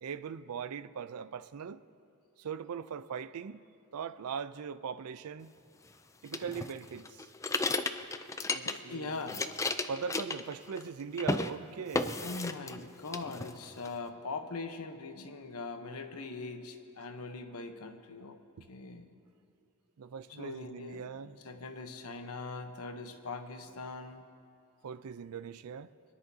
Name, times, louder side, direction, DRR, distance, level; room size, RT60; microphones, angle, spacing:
voice 1, 0.0-1.8 2.4-3.6 3.9-5.5 6.2-7.2 8.5-9.2 9.9-12.2 20.0-21.4 24.8-25.9, right 6 dB, 80° right, 0.4 m, -40 dB
sound 1, 6.3-9.0 9.2-10.9 11.2-11.5 11.9-12.8 13.1-13.9, left 3 dB, 15° left, 0.3 m, -34 dB
voice 2, 8.2-9.5 12.2-18.4 18.7-19.1 20.4-24.2, left 3 dB, 80° left, 0.9 m, -42 dB
26.5 x 10.5 x 2.8 m
head